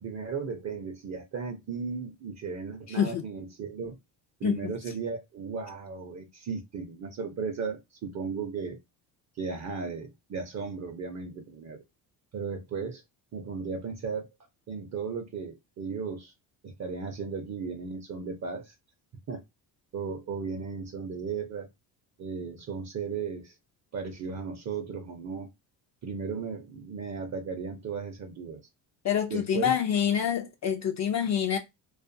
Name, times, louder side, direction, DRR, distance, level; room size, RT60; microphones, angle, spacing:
voice 1, 0.0-4.0 4.4-8.8 9.4-11.8 12.3-13.0 13.3-14.3 14.7-16.3 16.6-18.7 19.3-19.4 19.9-21.7 22.2-23.5 23.9-25.5 26.0-28.6 29.3-29.7, right 5 dB, 40° right, 0.6 m, -35 dB
voice 2, 2.9-3.2 4.4-4.7 29.0-31.6, left 9 dB, 40° left, 0.4 m, -27 dB
2.4 x 2.4 x 2.5 m
supercardioid pair, 85°, 45 cm